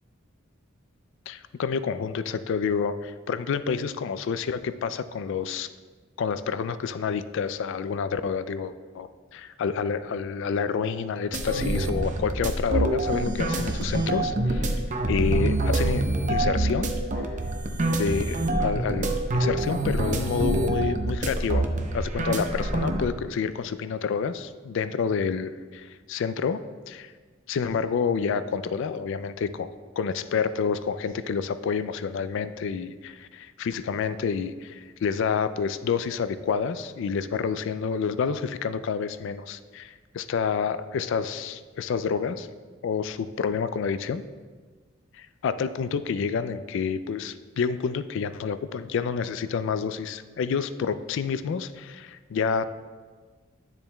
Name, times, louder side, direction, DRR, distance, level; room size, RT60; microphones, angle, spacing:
voice 1, 1.3-5.7 6.2-14.8 15.1-16.9 17.9-21.7 21.9-26.6 26.9-27.1 27.5-29.7 30.0-42.5 42.8-44.2 45.2-52.6, left 6 dB, 65° left, 13 dB, 0.3 m, -28 dB
sound 1, 11.3-23.1, right 2 dB, 40° right, 0.6 m, -26 dB
10.0 x 7.1 x 2.2 m, 1.5 s
head